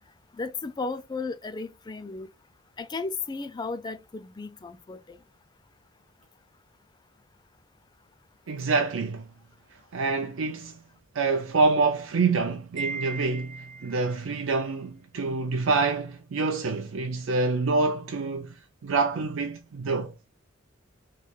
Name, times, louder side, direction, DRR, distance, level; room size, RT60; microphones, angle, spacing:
voice 1, 0.4-2.3 2.8-5.2, left 4 dB, 20° left, 0.3 m, -34 dB
voice 2, 8.5-9.2 9.9-10.7 11.2-13.5 13.8-18.5 18.8-20.1, right 4 dB, 80° right, 0.5 m, -26 dB
Wind chime, 12.8-14.2, right 4 dB, 45° right, 1.8 m, -37 dB
3.6 x 3.2 x 2.3 m
head